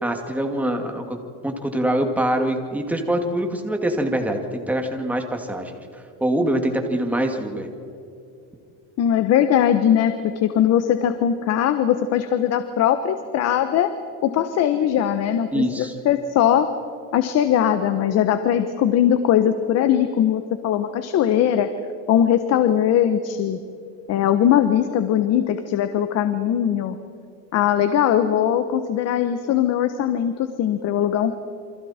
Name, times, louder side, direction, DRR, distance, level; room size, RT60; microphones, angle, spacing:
voice 1, 0.0-1.2 1.4-5.8 6.2-7.7 15.5-15.9, right 1 dB, 5° right, 4 dB, 2.4 m, -24 dB
voice 2, 9.0-13.9 14.2-16.7 17.1-21.7 22.1-23.6 24.1-27.0 27.5-31.3, left 10 dB, 45° left, 9 dB, 1.3 m, -20 dB
29.0 x 25.5 x 4.5 m, 2.6 s
cardioid pair, 140°, 35 cm